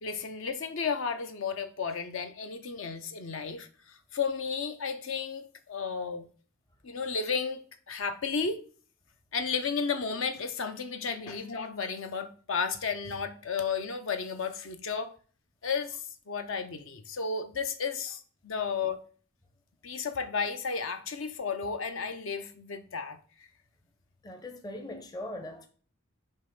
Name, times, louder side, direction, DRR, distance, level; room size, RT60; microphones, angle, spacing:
voice 1, 0.0-6.2 6.8-8.6 9.3-15.1 15.6-16.0 16.3-19.0 19.8-23.2, left 5 dB, 65° left, 0.7 m, -33 dB
voice 2, 24.2-25.7, left 1 dB, 20° left, 0.7 m, -40 dB
5.4 x 3.3 x 5.4 m
head